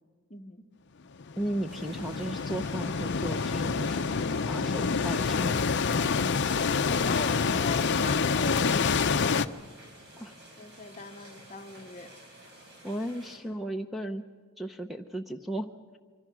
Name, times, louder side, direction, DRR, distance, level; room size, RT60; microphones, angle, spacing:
voice 1, 0.3-0.7 6.8-9.5 10.6-12.1, left 3 dB, 30° left, 8 dB, 0.9 m, -40 dB
sound 1, 1.2-9.5, left 5 dB, 55° left, 0.6 m, -27 dB
voice 2, 1.4-5.8 10.2-10.3 12.8-14.2 14.6-15.7, right 1 dB, ahead, 7 dB, 0.7 m, -35 dB
sound 2, 1.7-13.4, right 1 dB, 50° right, 4.8 m, -51 dB
25.5 x 24.5 x 6.2 m, 1.5 s
head